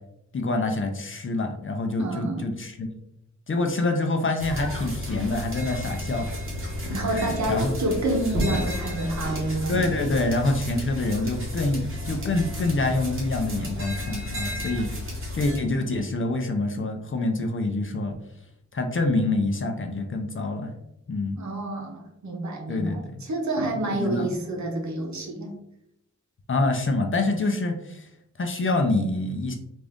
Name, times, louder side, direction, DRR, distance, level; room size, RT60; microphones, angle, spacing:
voice 1, 0.3-2.9 3.5-6.3 7.1-7.8 9.7-14.9 15.3-18.1 18.7-20.7 21.1-21.4 22.7-23.2 23.6-24.3 26.5-28.1 28.4-29.6, left 2 dB, 45° left, 4 dB, 0.5 m, -26 dB
voice 2, 2.0-2.4 6.9-9.8 21.4-25.6, right 1 dB, 70° right, 2 dB, 0.9 m, -28 dB
sound 1, 4.4-15.6, left 1 dB, 45° right, 1.2 m, -32 dB
3.6 x 2.5 x 3.4 m, 0.79 s
wide cardioid pair, 110°, 29 cm